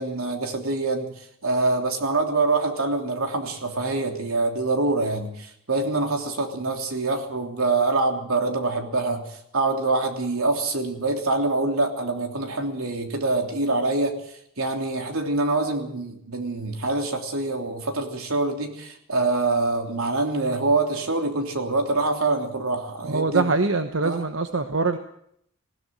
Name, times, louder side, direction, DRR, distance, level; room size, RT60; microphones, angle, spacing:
voice 1, 0.0-23.5 24.0-24.3, right 3 dB, 80° right, 4 dB, 3.3 m, -25 dB
voice 2, 23.1-25.0, right 3 dB, 60° right, 7 dB, 1.1 m, -23 dB
20.5 x 16.5 x 7.7 m, 0.72 s
head